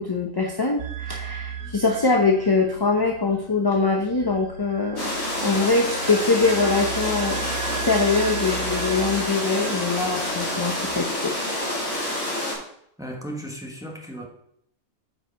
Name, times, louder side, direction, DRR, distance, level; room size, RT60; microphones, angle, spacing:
voice 1, 0.0-7.5 7.8-11.3, left 4 dB, 25° left, 1 dB, 0.5 m, -23 dB
sound 1, 0.8-12.0, right 7 dB, 75° right, 1.4 m, -36 dB
sound 2, 5.0-12.5, left 1 dB, 80° left, 3.1 m, -28 dB
voice 2, 13.0-14.3, right 1 dB, 5° right, 0 dB, 1.2 m, -35 dB
8.7 x 4.8 x 4.5 m, 0.72 s
omnidirectional pair, 1.4 m